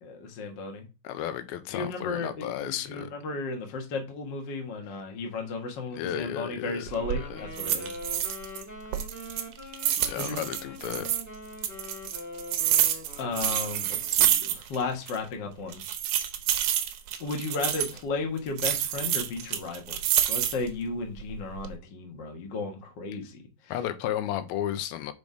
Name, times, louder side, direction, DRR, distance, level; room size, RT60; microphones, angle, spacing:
voice 1, 0.0-0.9 1.7-7.9 10.2-10.4 13.2-15.8 17.2-20.0 20.3-23.7, left 3 dB, 55° left, 1.2 m, -34 dB
voice 2, 1.0-3.1 5.9-6.9 7.2-7.4 10.0-11.1 23.7-25.1, left 11 dB, 90° left, 2.5 m, -33 dB
Wind instrument woodwind instrument, 6.9-14.3, left 2 dB, 15° left, 0.5 m, -43 dB
sound 1, 6.9-7.2 7.6-8.6 8.9-11.2 11.6-14.8 15.1-15.2 15.7-18.0 18.6-20.7 21.2-21.7, right 11 dB, 80° right, 1.7 m, -27 dB
5.3 x 5.1 x 4.8 m
omnidirectional pair, 4.3 m